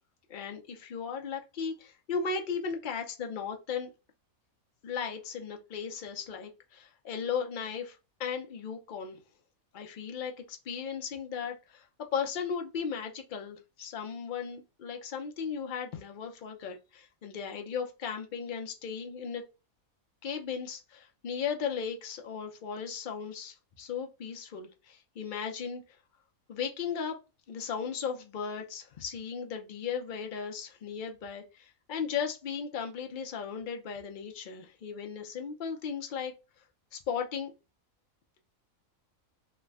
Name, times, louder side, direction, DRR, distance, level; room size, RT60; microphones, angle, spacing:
voice 1, 0.3-3.9 4.8-9.2 9.7-11.9 12.1-19.4 20.2-25.8 26.5-27.2 27.5-36.3 36.9-37.5, left 6 dB, 55° left, 0.5 m, -36 dB
3.2 x 2.1 x 3.4 m
omnidirectional pair, 1.5 m